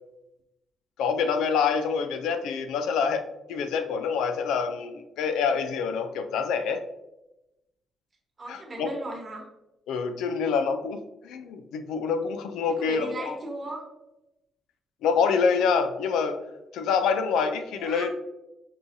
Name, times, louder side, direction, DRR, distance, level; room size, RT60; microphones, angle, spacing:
voice 1, 1.0-3.2 3.5-6.8 8.5-8.9 9.9-13.3 15.0-16.4 16.7-18.1, left 6 dB, 85° left, 7 dB, 0.4 m, -26 dB
voice 2, 8.4-9.4 12.8-13.8 17.8-18.1, right 1 dB, 35° right, 0 dB, 1.2 m, -36 dB
5.4 x 2.3 x 2.6 m, 0.92 s
cardioid pair, 90°, 0 cm